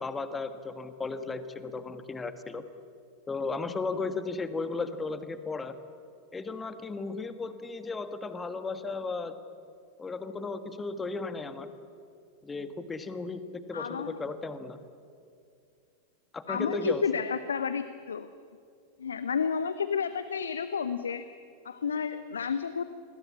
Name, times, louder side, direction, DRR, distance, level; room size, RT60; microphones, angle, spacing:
voice 1, 0.0-2.6 3.3-5.7 6.3-9.3 10.0-11.7 12.4-13.4 13.7-14.8 16.3-17.0, left 3 dB, 15° left, 10 dB, 1.7 m, -35 dB
voice 2, 13.7-14.2 16.5-18.3 19.0-21.3 21.6-22.8, left 6 dB, 70° left, 12 dB, 0.9 m, -31 dB
28.0 x 21.0 x 8.6 m, 2.4 s
figure-of-eight pair, 90°, 0 cm